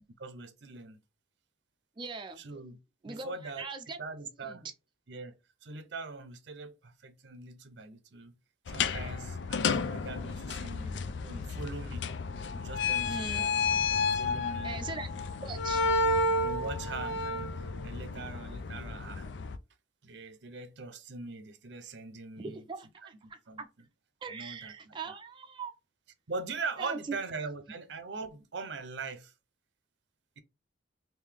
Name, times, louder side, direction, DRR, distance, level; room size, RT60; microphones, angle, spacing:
voice 1, 0.2-1.0 2.4-2.8 3.1-3.7 4.0-4.7 5.1-8.3 8.7-12.0 12.5-13.6 14.1-14.7 15.1-15.2 16.4-19.3 20.0-22.6 23.5-23.6 24.3-25.1 26.3-29.3, right 3 dB, 80° right, 0.6 m, -42 dB
voice 2, 2.0-2.4 3.0-4.0 4.5-4.7 13.0-13.5 14.6-15.9 22.4-23.7 24.2-25.7 26.8-27.0, right 4 dB, 25° right, 0.4 m, -41 dB
sound 1, 8.7-19.6, left 3 dB, 85° left, 0.4 m, -31 dB
3.6 x 2.6 x 3.3 m
head